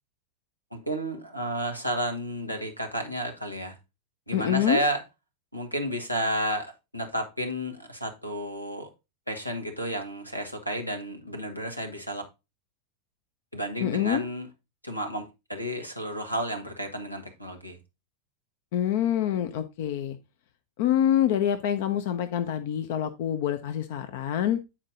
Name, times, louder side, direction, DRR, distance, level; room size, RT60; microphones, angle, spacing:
voice 1, 0.7-3.8 4.3-5.0 5.5-8.9 9.3-12.2 13.5-14.5 14.8-17.8, equal, 90° left, 1.3 m, -31 dB
voice 2, 4.3-4.8 13.8-14.2 18.7-20.2 20.8-24.6, left 10 dB, 50° left, 0.6 m, -26 dB
8.8 x 4.5 x 3.8 m
figure-of-eight pair, 90°, 0 cm